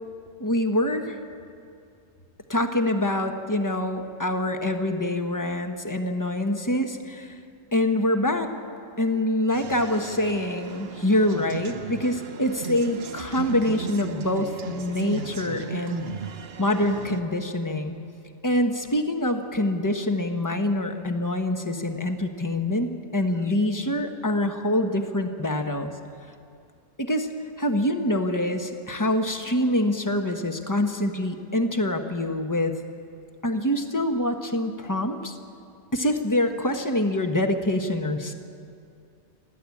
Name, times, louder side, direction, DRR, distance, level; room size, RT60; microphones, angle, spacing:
voice 1, 0.4-1.2 2.5-7.4 7.7-8.5 9.0-16.1 16.6-17.9 18.4-25.9 27.0-27.3 27.6-32.8 33.4-35.4 35.9-38.3, left 1 dB, 15° left, 5 dB, 1.2 m, -25 dB
sound 1, 9.5-17.2, right 6 dB, 55° right, 1.1 m, -36 dB
28.5 x 11.5 x 8.5 m, 2.5 s
omnidirectional pair, 1.3 m